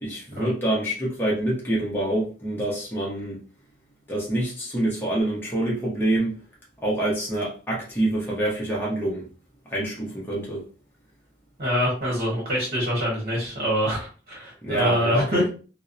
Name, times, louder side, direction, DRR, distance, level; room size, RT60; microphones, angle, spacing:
voice 1, 0.0-3.4 4.1-6.3 6.8-9.2 9.7-10.6 14.6-15.5, right 1 dB, 10° left, 0.7 m, -26 dB
voice 2, 11.6-15.5, equal, 45° right, 1.1 m, -25 dB
2.5 x 2.0 x 2.5 m
head